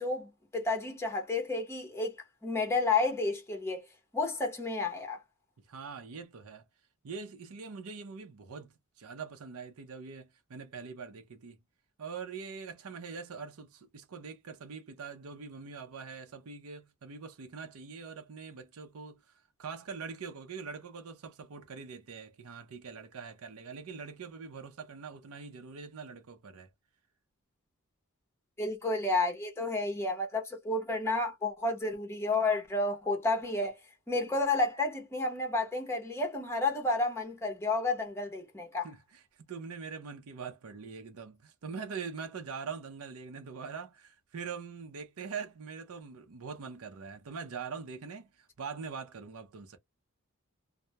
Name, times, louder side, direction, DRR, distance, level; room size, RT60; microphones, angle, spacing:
voice 1, 0.0-2.2 2.4-3.8 4.1-5.2 28.6-33.8 34.1-38.9, left 3 dB, 10° left, 0.7 m, -31 dB
voice 2, 5.7-6.6 7.0-11.6 12.0-19.2 19.6-26.7 38.8-39.2 39.5-49.8, right 5 dB, 80° right, 0.5 m, -43 dB
2.2 x 2.0 x 2.7 m
head